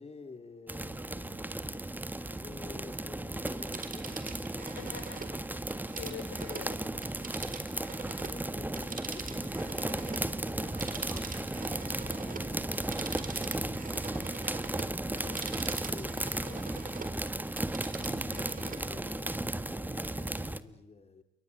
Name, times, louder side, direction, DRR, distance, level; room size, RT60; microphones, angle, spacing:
voice 1, 0.0-5.2 8.1-14.4 15.8-17.5 18.1-21.2, left 4 dB, 30° left, 7 dB, 3.8 m, -52 dB
sound 1, 0.7-20.6, right 1 dB, 10° right, 1.5 m, -35 dB
Telephone, 3.5-8.4 8.7-17.2 17.5-18.9 19.3-19.4, right 5 dB, 45° right, 4.0 m, -45 dB
voice 2, 4.7-7.0 14.8-15.5 18.0-18.5, left 9 dB, 85° left, 10 dB, 4.5 m, -47 dB
28.5 x 23.0 x 8.3 m, 0.78 s
cardioid pair, 90°, 20 cm